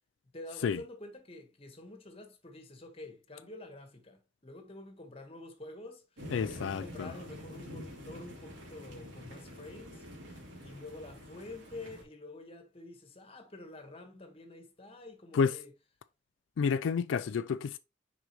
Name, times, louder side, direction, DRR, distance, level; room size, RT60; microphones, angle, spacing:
voice 1, 0.3-10.0 10.6-15.7, left 2 dB, 30° left, 1.3 m, -48 dB
sound 1, 6.2-12.0, left 1 dB, 80° right, 2.7 m, -47 dB
voice 2, 6.3-7.1 15.3-15.5 16.6-17.8, left 6 dB, 85° left, 0.3 m, -30 dB
6.4 x 4.9 x 3.0 m
head